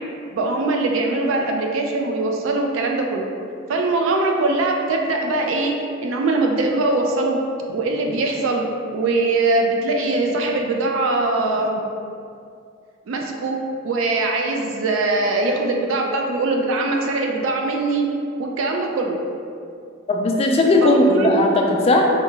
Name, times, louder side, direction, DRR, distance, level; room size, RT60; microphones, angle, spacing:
voice 1, 0.3-3.3 3.7-5.7 6.0-7.4 7.7-8.6 8.9-11.8 13.1-13.6 13.8-18.1 18.4-19.2 20.8-21.4, right 2 dB, 80° right, 1 dB, 0.3 m, -21 dB
voice 2, 20.1-22.1, left 2 dB, 30° left, 1 dB, 0.3 m, -17 dB
3.6 x 2.2 x 3.0 m, 2.4 s
head